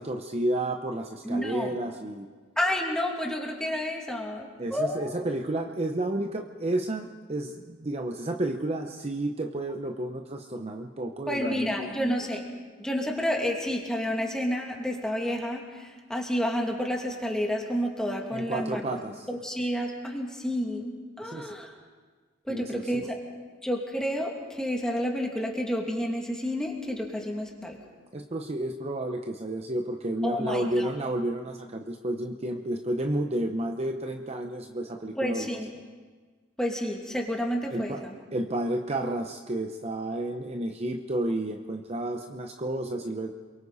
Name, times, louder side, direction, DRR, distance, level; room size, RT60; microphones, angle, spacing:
voice 1, 0.0-2.3 4.6-11.7 18.3-19.3 21.2-21.5 22.5-23.0 28.1-35.5 37.7-38.0 38.3-43.3, right 1 dB, 30° right, 4 dB, 0.8 m, -31 dB
voice 2, 1.2-1.8 2.6-5.1 11.3-12.4 12.8-18.9 19.3-21.7 22.5-23.2 23.6-27.8 30.2-30.9 35.2-35.7 36.6-38.1, equal, 5° left, 0 dB, 2.5 m, -30 dB
28.0 x 23.0 x 4.2 m, 1.5 s
head